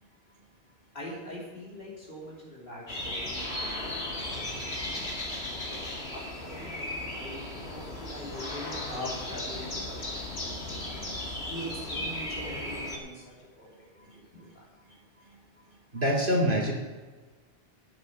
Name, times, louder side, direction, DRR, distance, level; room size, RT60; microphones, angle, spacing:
voice 1, 0.9-5.1 5.6-5.8 6.1-7.4 7.7-10.9 11.4-13.7 13.9-14.6, left 1 dB, 60° left, -5 dB, 3.6 m, -43 dB
sound 1, 2.9-13.0, left 1 dB, 80° left, 2.4 m, -36 dB
voice 2, 15.9-16.7, equal, 55° right, -2 dB, 2.3 m, -26 dB
10.5 x 7.8 x 7.4 m, 1.3 s
omnidirectional pair, 1.1 m